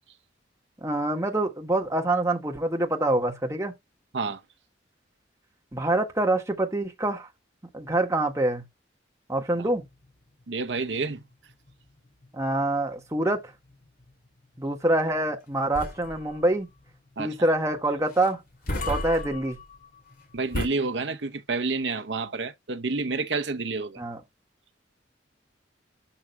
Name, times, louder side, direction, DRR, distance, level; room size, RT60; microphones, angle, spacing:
voice 1, 0.8-3.7 5.7-7.3 7.7-8.6 9.3-9.8 12.3-13.4 14.6-16.7 17.2-18.4 18.9-19.6 24.0-24.2, right 1 dB, 15° right, 1.6 m, -25 dB
sound 1, 9.3-20.7, left 1 dB, 50° left, 2.6 m, -38 dB
voice 2, 10.5-11.2 17.2-17.4 20.3-24.0, right 3 dB, 65° right, 0.8 m, -29 dB
11.5 x 6.0 x 2.2 m
head